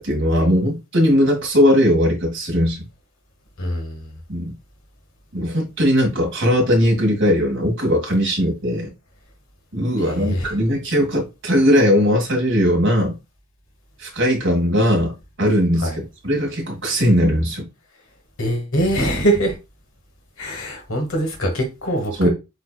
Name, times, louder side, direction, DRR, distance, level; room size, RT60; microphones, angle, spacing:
voice 1, 0.0-2.8 4.3-4.5 5.3-8.9 9.7-13.1 14.0-15.1 15.4-17.7 22.2-22.3, equal, 55° right, 2.0 m, -19 dB
voice 2, 3.6-4.1 10.0-10.5 15.8-16.0 18.4-19.5 20.4-22.3, right 1 dB, 65° left, 1.4 m, -23 dB
7.9 x 2.8 x 2.3 m
head